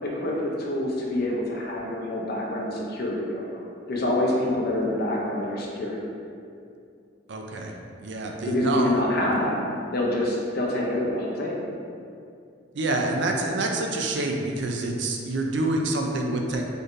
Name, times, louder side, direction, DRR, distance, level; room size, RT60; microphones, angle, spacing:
voice 1, 0.0-3.6 3.9-6.1 8.5-9.6 9.9-11.7, left 1 dB, 55° left, -2 dB, 0.6 m, -26 dB
voice 2, 7.3-7.7 8.0-8.9 12.7-16.6, right 2 dB, 65° right, 2 dB, 0.4 m, -27 dB
4.3 x 3.2 x 2.6 m, 2.4 s
head